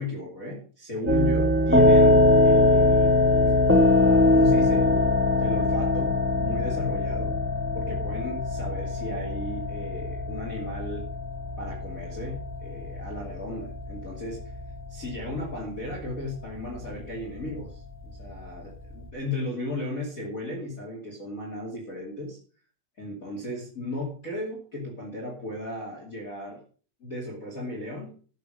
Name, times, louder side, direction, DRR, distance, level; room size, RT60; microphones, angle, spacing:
voice 1, 0.0-3.1 4.0-7.4 7.7-11.0 11.6-14.5 14.9-22.4 23.0-26.6 27.0-28.1, left 1 dB, 25° left, -1 dB, 2.7 m, -35 dB
sound 1, 1.1-19.0, left 2 dB, 15° right, 0.5 m, -23 dB
13.0 x 6.9 x 6.4 m, 0.41 s
omnidirectional pair, 3.9 m